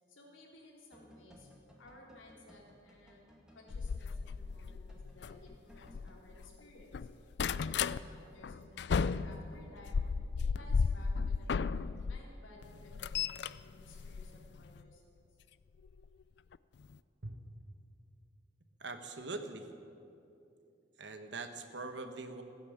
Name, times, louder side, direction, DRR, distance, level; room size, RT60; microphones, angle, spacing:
voice 1, 0.1-1.5 1.8-3.3 3.5-10.0 10.4-11.7 12.1-15.4, left 2 dB, 90° left, -2 dB, 3.5 m, -57 dB
sound 1, 0.9-6.1, equal, 5° right, 2.0 m, -60 dB
sound 2, 3.7-6.5 6.8-8.0 8.4-12.2 12.6-14.8 15.9-16.1 16.5-16.6 16.8-16.9, left 5 dB, 60° left, 0.4 m, -34 dB
voice 2, 18.8-19.7 21.0-22.4, right 3 dB, 65° right, 8 dB, 1.3 m, -42 dB
16.0 x 10.0 x 8.5 m, 2.6 s
head